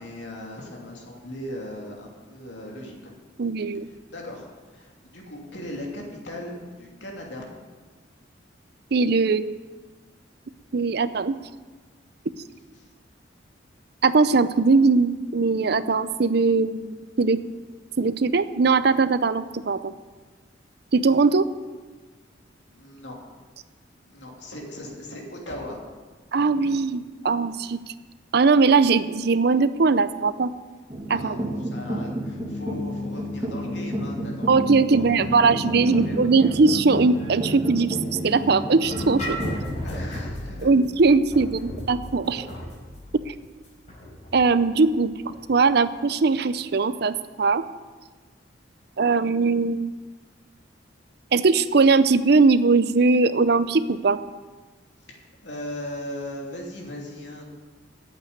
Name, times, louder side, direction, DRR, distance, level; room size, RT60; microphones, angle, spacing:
voice 1, 0.0-3.1 3.8-7.4 12.7-12.9 22.7-23.2 24.0-25.8 31.1-35.5 35.8-36.5 39.3-39.4 39.8-40.7 42.6-42.7 55.1-57.5, left 1 dB, 70° left, -1 dB, 3.0 m, -38 dB
voice 2, 3.4-3.9 8.9-9.4 10.7-11.4 14.0-17.4 18.0-19.9 20.9-21.5 26.3-27.8 28.3-30.5 31.1-31.4 34.5-39.4 40.6-42.5 43.3-43.4 44.3-47.6 49.0-49.9 51.3-54.2, right 4 dB, 60° right, 13 dB, 0.6 m, -20 dB
sound 1, 30.9-39.6, equal, 25° right, 1.8 m, -30 dB
sound 2, 38.8-45.5, equal, 40° left, 4.2 m, -35 dB
9.0 x 8.3 x 9.3 m, 1.4 s
head